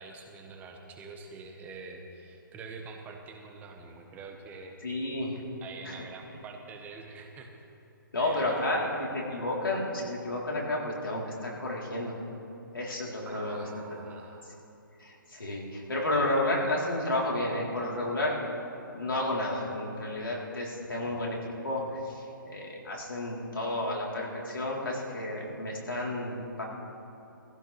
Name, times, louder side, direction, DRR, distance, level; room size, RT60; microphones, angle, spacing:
voice 1, 0.0-4.8 5.6-7.5 8.2-9.0 13.2-14.6 21.0-21.3, right 4 dB, 15° right, 3 dB, 1.3 m, -45 dB
voice 2, 4.8-5.4 5.8-5.9 8.1-12.2 12.7-14.0 15.0-18.4 18.8-21.4 21.6-26.6, left 1 dB, 80° left, -4 dB, 3.9 m, -31 dB
17.5 x 15.5 x 3.5 m, 2.8 s
figure-of-eight pair, 140°, 11 cm